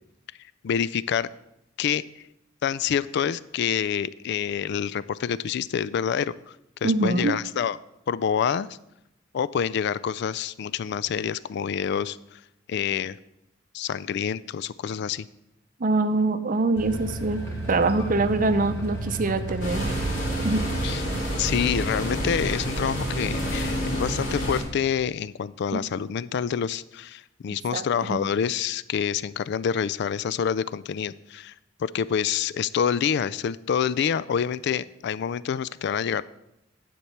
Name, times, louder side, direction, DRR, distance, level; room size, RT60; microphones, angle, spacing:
voice 1, 0.6-1.3 1.8-2.0 2.6-6.3 6.8-7.8 8.1-8.8 9.3-12.4 12.7-13.2 13.7-15.3 20.8-21.0 21.4-31.5 31.8-36.2, left 8 dB, 60° left, 18 dB, 0.3 m, -27 dB
voice 2, 6.8-7.4 15.8-17.4 17.7-19.9 20.4-20.6 27.7-27.8 28.1-28.2, right 2 dB, 45° right, 10 dB, 0.6 m, -24 dB
sound 1, 16.8-23.7, right 2 dB, 15° left, 1.6 m, -35 dB
sound 2, 19.6-24.6, equal, 85° left, 3.0 m, -28 dB
10.0 x 4.6 x 6.7 m, 0.85 s
head